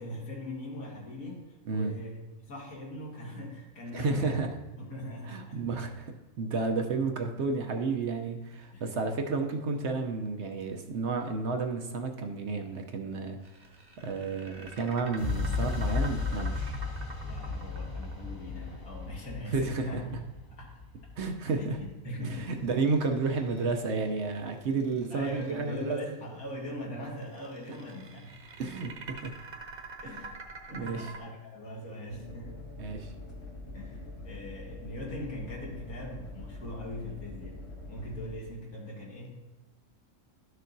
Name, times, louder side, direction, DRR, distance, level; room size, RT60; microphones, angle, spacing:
voice 1, 0.0-2.2 2.5-4.5 4.8-5.6 8.7-9.3 17.2-20.2 20.6-20.7 21.6-22.7 24.7-28.4 30.0-30.4 30.7-32.6 33.7-39.4, left 1 dB, 90° left, -3 dB, 2.3 m, -41 dB
voice 2, 3.9-4.5 5.3-13.4 14.0-16.8 19.5-20.2 21.2-21.8 22.2-26.0 28.6-29.4 30.7-31.1 32.8-33.1, right 4 dB, 60° right, 4 dB, 0.9 m, -31 dB
sound 1, 13.4-19.6 22.5-24.0 24.6-25.9 27.2-31.2, right 3 dB, 45° right, 1.1 m, -47 dB
sound 2, 15.2-23.1, left 4 dB, 40° left, 1.4 m, -35 dB
sound 3, 32.1-38.3, left 2 dB, 60° left, 1.7 m, -44 dB
12.5 x 6.4 x 2.6 m, 1.1 s
omnidirectional pair, 1.5 m